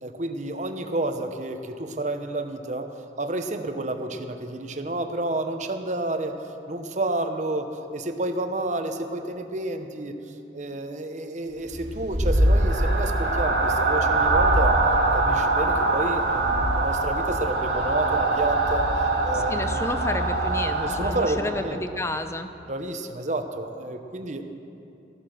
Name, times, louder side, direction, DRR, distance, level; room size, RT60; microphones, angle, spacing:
voice 1, 0.0-2.9 3.2-6.4 6.7-14.8 15.1-18.9 19.2-19.8 20.8-21.8 22.7-24.4, right 2 dB, 40° right, 6 dB, 0.9 m, -30 dB
sound 1, 11.7-21.7, right 2 dB, 75° right, 1.8 m, -23 dB
voice 2, 19.3-22.5, left 1 dB, 15° left, 8 dB, 0.6 m, -31 dB
14.5 x 11.5 x 6.6 m, 2.8 s
head